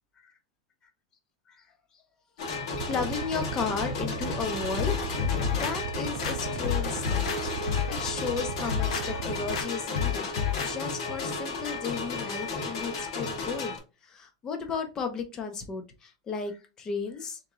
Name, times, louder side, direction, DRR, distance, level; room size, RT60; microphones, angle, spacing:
sound 1, 2.4-13.8, left 3 dB, 55° left, 1.1 m, -34 dB
sound 2, 2.7-9.6, right 9 dB, 45° right, 0.4 m, -37 dB
voice 1, 2.9-10.3 10.6-13.8 14.0-17.4, left 5 dB, 15° left, 0.6 m, -34 dB
sound 3, 4.8-5.7 6.2-7.4 7.7-8.0 8.5-9.1 9.5-9.7 9.9-10.7 11.1-11.2, left 9 dB, 75° left, 0.9 m, -30 dB
3.4 x 3.0 x 3.7 m
supercardioid pair, 175°, 3 cm